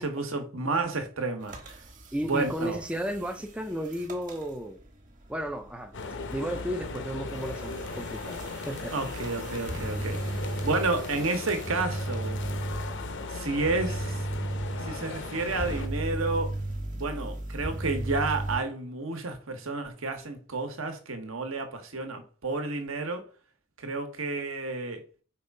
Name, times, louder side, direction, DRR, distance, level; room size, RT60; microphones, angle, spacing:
voice 1, 0.0-1.8 2.3-2.8 8.9-12.4 13.3-14.3 14.8-16.6 16.9-23.3 23.8-25.0, right 3 dB, 70° right, 1.3 m, -31 dB
sound 1, 1.4-18.6, right 2 dB, 40° right, 1.3 m, -36 dB
voice 2, 2.1-4.8 5.3-5.9 6.3-8.4 8.7-8.9, equal, 5° right, 0.4 m, -33 dB
sound 2, 5.9-15.9, left 3 dB, 55° left, 0.7 m, -37 dB
5.3 x 3.5 x 5.3 m
head